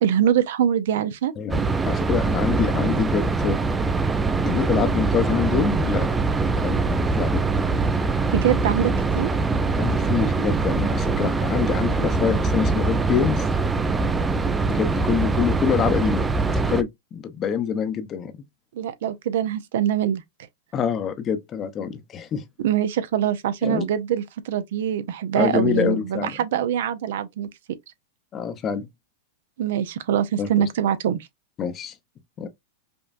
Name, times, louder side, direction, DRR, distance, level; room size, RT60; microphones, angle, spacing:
voice 1, 0.0-1.3 8.3-9.3 18.7-20.2 22.6-27.5 29.6-31.2, right 10 dB, 70° right, 0.6 m, -23 dB
voice 2, 1.4-3.6 4.5-6.1 6.6-7.4 9.8-13.5 14.7-18.3 20.7-22.4 23.6-23.9 25.4-26.3 28.3-28.9 30.4-30.5 31.6-31.9 32.4-32.5, left 7 dB, 30° left, 0.7 m, -26 dB
sound 1, 1.5-16.8, right 4 dB, 10° right, 0.4 m, -23 dB
5.2 x 2.2 x 2.5 m
hypercardioid pair, 130°, 0 cm